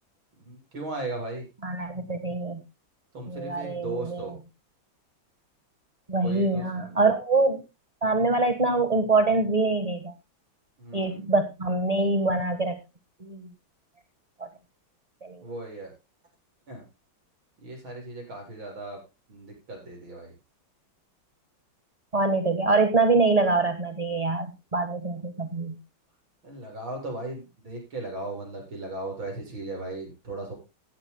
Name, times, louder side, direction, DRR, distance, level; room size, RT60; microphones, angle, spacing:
voice 1, 0.4-1.5 3.1-4.4 6.2-6.9 10.8-11.2 15.4-15.9 16.7-16.8 17.6-19.0 19.3-20.3 26.4-30.5, right 2 dB, 75° right, 1 dB, 8.6 m, -37 dB
voice 2, 1.6-2.6 3.3-4.3 6.1-7.6 8.0-10.1 10.9-12.8 13.2-13.5 14.4-14.5 15.2-15.4 22.1-24.5 24.7-25.8, right 3 dB, 20° right, 9 dB, 1.3 m, -24 dB
16.5 x 14.0 x 2.2 m, 0.28 s
omnidirectional pair, 2.2 m